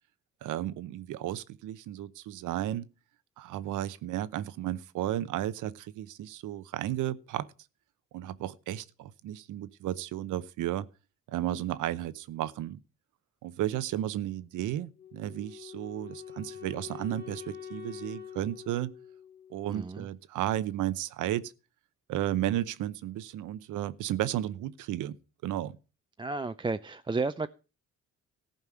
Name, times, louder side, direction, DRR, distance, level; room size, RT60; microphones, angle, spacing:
voice 1, 0.4-2.9 3.4-7.5 8.1-10.9 11.3-12.8 13.4-18.9 19.5-21.5 22.1-25.2 25.4-25.8, right 13 dB, 85° right, 0.9 m, -33 dB
Wind instrument woodwind instrument, 15.0-20.0, left 8 dB, 35° left, 2.5 m, -45 dB
voice 2, 19.7-20.1 26.2-27.5, right 3 dB, 15° right, 0.5 m, -32 dB
14.5 x 5.4 x 7.5 m
cardioid pair, 90°, 30 cm